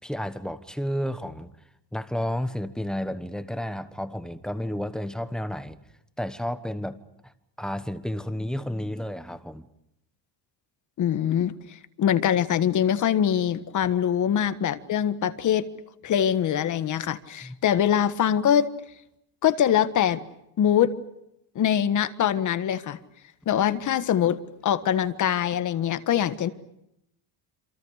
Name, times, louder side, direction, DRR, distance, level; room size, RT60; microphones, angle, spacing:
voice 1, 0.0-1.5 1.9-5.8 6.2-7.0 7.2-7.3 7.6-9.7 17.4-17.6, equal, ahead, 1.2 m, -31 dB
voice 2, 11.0-11.5 12.0-15.6 16.0-18.7 19.4-20.2 20.6-20.9 21.5-23.0 23.4-24.4 24.6-26.5, left 9 dB, 45° left, 1.6 m, -23 dB
28.0 x 27.5 x 6.6 m
cardioid pair, 170°, 42 cm